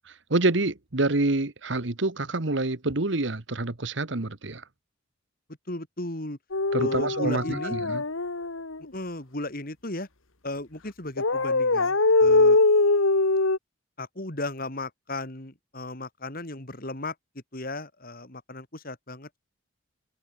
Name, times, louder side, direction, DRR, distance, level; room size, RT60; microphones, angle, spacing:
voice 1, 0.3-4.6 6.7-8.0, right 2 dB, 65° right, 1.4 m, -27 dB
voice 2, 5.7-6.4 6.8-7.7 8.9-10.1 10.4-12.6 14.0-17.1 17.5-19.4, left 2 dB, 45° left, 3.4 m, -35 dB
sound 1, 6.5-8.8 11.2-13.6, left 3 dB, 90° left, 1.9 m, -22 dB
head